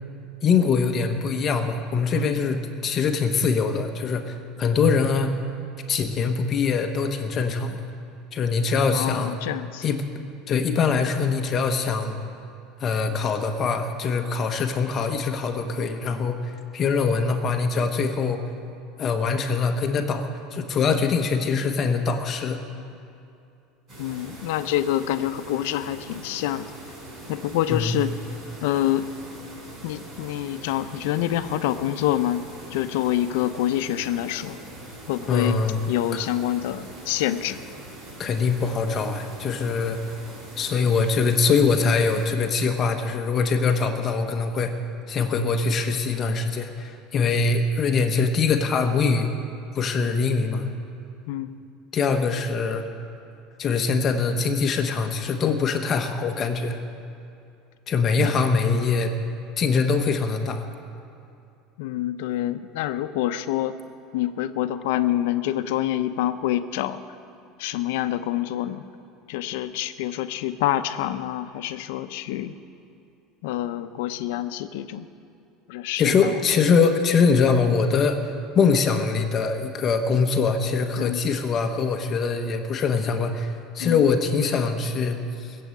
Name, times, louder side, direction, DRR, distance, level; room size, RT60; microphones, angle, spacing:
voice 1, 0.4-5.4 5.9-7.8 8.3-9.3 9.8-10.1 10.5-12.2 12.8-18.4 19.0-22.6 27.7-27.9 35.3-35.8 36.1-36.2 38.2-40.0 40.6-44.7 45.1-49.3 49.7-50.7 51.9-52.8 53.6-56.8 57.9-59.1 59.6-60.6 76.0-78.2 78.5-85.6, left 5 dB, 25° left, 5 dB, 1.1 m, -23 dB
voice 2, 8.9-9.9 24.0-26.7 27.3-28.1 28.6-29.1 29.8-32.4 32.7-34.6 35.1-35.6 35.9-37.6 51.3-51.6 58.2-58.3 61.8-63.7 64.1-67.0 67.6-68.8 69.3-72.5 73.4-75.1 75.7-76.4 81.0-81.2 83.8-84.0, left 13 dB, 75° left, 11 dB, 0.7 m, -26 dB
sound 1, 23.9-42.3, right 1 dB, 30° right, 4.8 m, -42 dB
19.5 x 7.7 x 8.4 m, 2.6 s
cardioid pair, 165°, 0 cm